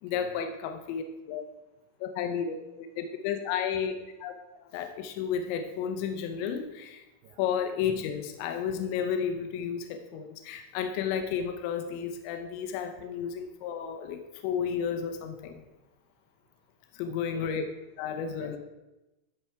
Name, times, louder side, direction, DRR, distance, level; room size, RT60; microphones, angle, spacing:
voice 1, 0.0-1.4 2.0-4.3 4.7-7.1 7.4-15.6 16.9-17.7 18.0-18.6, left 7 dB, 75° left, 6 dB, 2.9 m, -32 dB
voice 2, 17.1-17.6 18.4-18.6, right 11 dB, 90° right, 7 dB, 2.4 m, -50 dB
13.0 x 4.7 x 4.5 m, 0.99 s
omnidirectional pair, 5.6 m